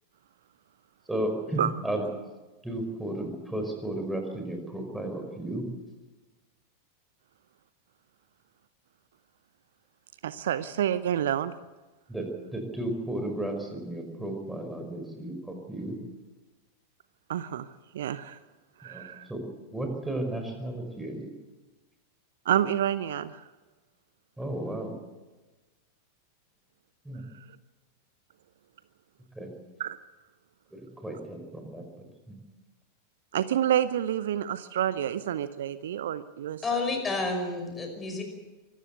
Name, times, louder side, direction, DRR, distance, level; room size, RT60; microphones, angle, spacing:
voice 1, 1.1-2.0 2.6-5.7 12.1-16.0 18.8-19.0 19.3-21.3 24.4-25.0 27.0-27.2 29.4-29.5 30.7-31.8 32.3-32.4, right 1 dB, 5° right, 4 dB, 5.0 m, -34 dB
voice 2, 10.2-11.5 17.3-17.7 17.9-18.4 18.8-19.3 22.4-23.4 29.8-30.0 33.3-36.8, right 10 dB, 60° right, 15 dB, 0.7 m, -28 dB
voice 3, 36.6-38.2, left 3 dB, 15° left, 5 dB, 5.5 m, -30 dB
24.5 x 14.0 x 8.2 m, 1.2 s
figure-of-eight pair, 90°, 0 cm